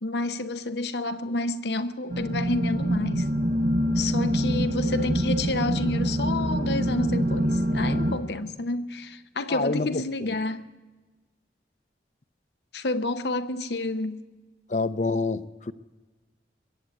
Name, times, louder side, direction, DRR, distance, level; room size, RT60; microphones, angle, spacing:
voice 1, 0.0-3.3 3.9-10.7 12.7-14.2, left 2 dB, 70° left, 0.8 m, -29 dB
sound 1, 2.1-8.2, equal, 50° right, 1.1 m, -25 dB
voice 2, 9.5-10.0 14.7-15.7, left 3 dB, 40° left, 0.6 m, -27 dB
22.0 x 7.8 x 8.4 m
head